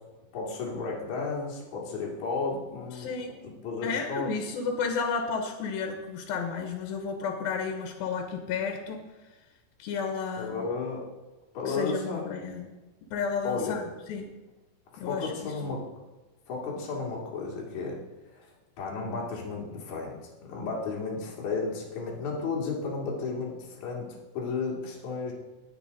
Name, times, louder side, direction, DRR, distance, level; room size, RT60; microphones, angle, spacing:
voice 1, 0.3-3.1 3.4-4.3 10.4-11.0 11.5-12.2 13.4-13.8 15.1-15.8 16.5-18.0 18.3-18.5 18.8-20.1 20.4-24.1 24.3-25.3, left 4 dB, 55° left, -3 dB, 3.3 m, -33 dB
voice 2, 3.0-3.4 3.8-9.0 9.8-10.7 11.7-12.7 13.1-13.8 14.1-14.3 15.0-15.8, left 5 dB, 80° left, 4 dB, 2.9 m, -32 dB
19.0 x 6.5 x 4.1 m, 1.1 s
omnidirectional pair, 4.1 m